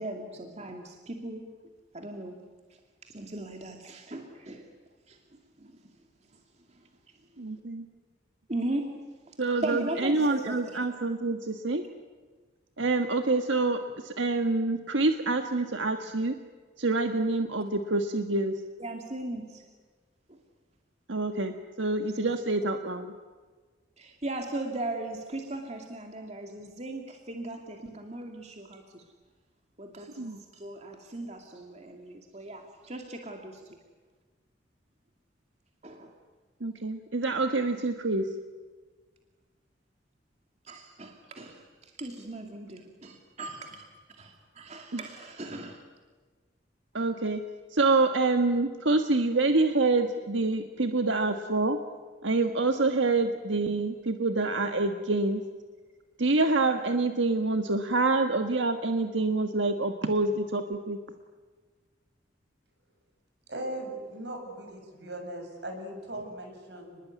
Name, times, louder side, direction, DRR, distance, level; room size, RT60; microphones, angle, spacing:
voice 1, 0.0-1.5 1.9-2.4 3.0-4.7 5.1-5.2 5.6-5.7 8.5-8.9 9.6-10.8 18.8-19.6 20.3-20.4 24.0-29.0 29.8-33.6 35.8-36.1 40.6-43.8 44.2-45.8, right 2 dB, 35° right, 3 dB, 2.4 m, -38 dB
voice 2, 7.4-7.8 9.4-11.8 12.8-16.3 16.8-18.5 21.1-23.1 30.2-30.4 36.6-38.2 44.9-45.0 46.9-47.4 47.7-51.8 52.2-55.4 56.2-61.0, right 3 dB, 85° right, 6 dB, 1.4 m, -26 dB
voice 3, 63.5-67.0, right 1 dB, 65° right, 4 dB, 7.3 m, -39 dB
29.5 x 21.0 x 9.4 m, 1.4 s
head